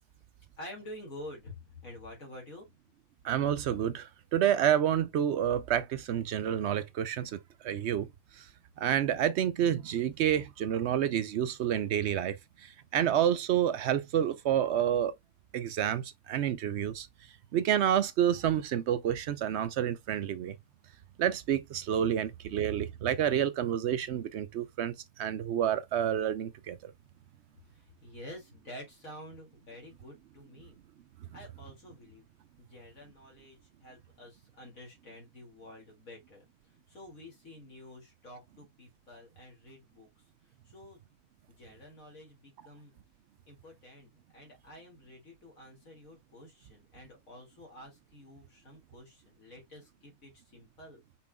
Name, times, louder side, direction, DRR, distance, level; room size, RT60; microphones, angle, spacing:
voice 1, 0.6-2.7 22.5-22.7 27.7-30.8 31.3-32.2 32.6-40.1 40.6-41.0 41.5-42.9 43.5-51.0, left 1 dB, 65° left, 2.7 m, -49 dB
voice 2, 3.2-7.4 7.6-8.1 8.8-12.4 12.9-15.1 15.5-17.1 17.5-20.6 21.2-24.9 25.2-26.9, right 10 dB, 70° right, 0.6 m, -29 dB
5.6 x 4.3 x 2.2 m
omnidirectional pair, 1.6 m